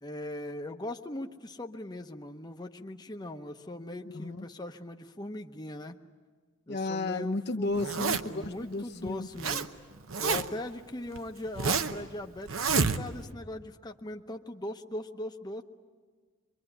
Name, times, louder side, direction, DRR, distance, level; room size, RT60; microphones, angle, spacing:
voice 1, 0.0-6.0 6.7-7.8 8.3-9.7 10.2-15.6, left 1 dB, 20° left, 4 dB, 0.8 m, -40 dB
voice 2, 4.1-4.4 6.7-9.3, left 2 dB, 55° left, 5 dB, 0.7 m, -33 dB
Zipper (clothing), 7.8-8.5 9.1-9.7 9.9-10.7 11.1-12.0 12.5-13.3, right 5 dB, 75° right, 0.9 m, -29 dB
25.0 x 23.5 x 9.0 m, 1.5 s
head